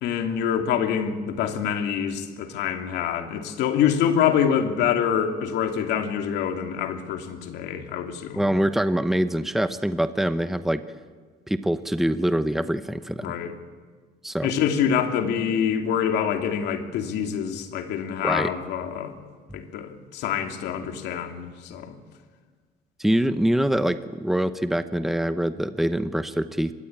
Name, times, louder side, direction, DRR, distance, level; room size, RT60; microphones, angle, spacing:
voice 1, 0.0-8.5 13.2-13.6 14.4-19.2 19.5-22.0, left 8 dB, 85° left, 6 dB, 2.7 m, -26 dB
voice 2, 8.4-10.8 11.5-13.3 14.2-14.5 18.2-18.5 23.0-26.7, right 1 dB, ahead, 11 dB, 1.0 m, -24 dB
25.0 x 21.5 x 8.9 m, 1.5 s
cardioid pair, 110°, 17 cm